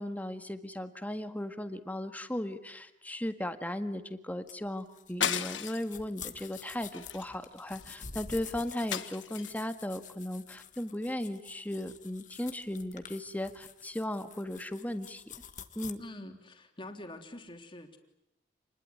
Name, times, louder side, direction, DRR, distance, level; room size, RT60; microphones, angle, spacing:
voice 1, 0.0-15.2 15.7-16.0, left 1 dB, 10° left, 8 dB, 1.7 m, -36 dB
sound 1, 4.5-15.9, left 7 dB, 45° left, 1.7 m, -48 dB
sound 2, 5.2-6.0 6.4-6.6 6.9-7.9 8.9-9.7, left 8 dB, 90° left, 1.5 m, -35 dB
voice 2, 16.0-18.0, left 1 dB, 25° left, 4 dB, 3.4 m, -46 dB
29.0 x 20.5 x 9.7 m, 0.87 s
head